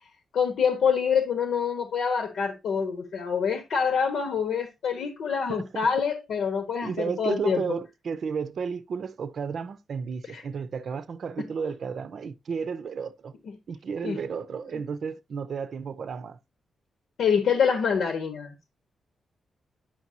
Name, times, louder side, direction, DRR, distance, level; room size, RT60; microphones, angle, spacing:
voice 1, 0.3-7.6 10.3-10.4 11.4-11.5 13.5-13.6 14.0-14.2 17.2-18.5, left 6 dB, 90° left, 1.3 m, -26 dB
voice 2, 6.8-13.3 13.7-16.4, right 6 dB, 60° right, 0.6 m, -33 dB
9.9 x 6.0 x 2.8 m
cardioid pair, 115°, 0 cm